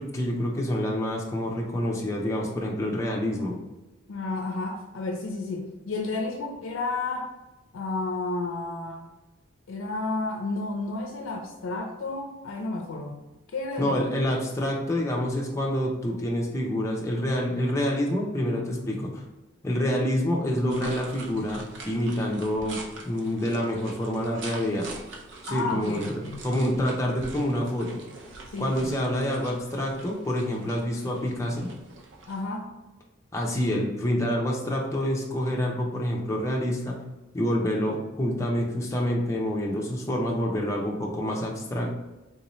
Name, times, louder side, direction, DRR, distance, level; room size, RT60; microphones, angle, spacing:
voice 1, 0.0-3.6 13.8-19.2 19.6-22.8 23.1-24.9 25.4-28.0 28.6-31.7 33.3-37.0 37.3-41.9, equal, 15° left, -2 dB, 0.6 m, -27 dB
voice 2, 4.1-7.3 7.7-9.0 9.7-13.2 13.5-13.9 25.5-26.6 28.5-29.0 32.3-32.8, left 3 dB, 80° left, 3 dB, 0.4 m, -32 dB
sound 1, 20.7-32.4, right 3 dB, 60° right, 0.5 m, -44 dB
3.7 x 2.7 x 3.0 m, 1.1 s
head